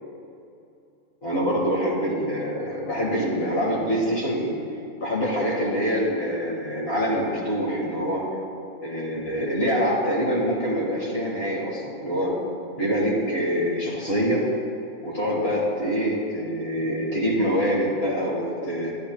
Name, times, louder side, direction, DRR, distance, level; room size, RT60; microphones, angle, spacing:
voice 1, 1.2-4.5 5.0-8.3 8.8-12.4 12.8-14.5 15.0-18.9, equal, 45° left, -4 dB, 1.8 m, -25 dB
12.0 x 9.6 x 2.2 m, 2.6 s
omnidirectional pair, 1.6 m